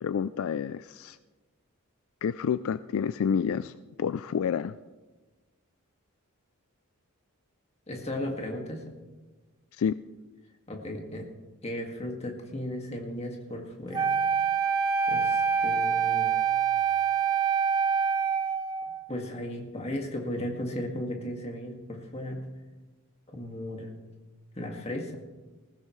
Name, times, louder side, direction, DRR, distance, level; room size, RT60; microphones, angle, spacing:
voice 1, 0.0-1.2 2.2-4.8 9.7-10.0, left 7 dB, 70° left, 14 dB, 0.3 m, -29 dB
voice 2, 7.9-8.8 10.7-11.3 11.6-14.1 15.1-16.4 19.1-22.5 23.3-24.0 24.6-25.2, left 1 dB, 30° left, 1 dB, 2.0 m, -35 dB
Wind instrument woodwind instrument, 13.9-19.0, right 6 dB, 20° right, 0.7 m, -26 dB
20.0 x 15.5 x 3.2 m, 1.3 s
head